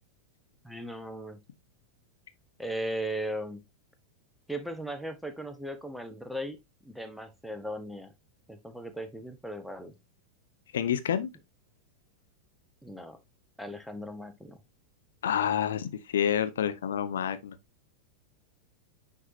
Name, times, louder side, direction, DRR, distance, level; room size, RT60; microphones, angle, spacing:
voice 1, 0.6-1.4 2.6-3.6 4.5-6.6 6.8-8.1 8.5-9.9 12.8-13.2 13.6-14.6, right 1 dB, ahead, 1.1 m, -37 dB
voice 2, 10.7-11.3 15.2-17.5, left 9 dB, 60° left, 0.7 m, -28 dB
9.7 x 4.7 x 2.7 m
figure-of-eight pair, 90°, 0 cm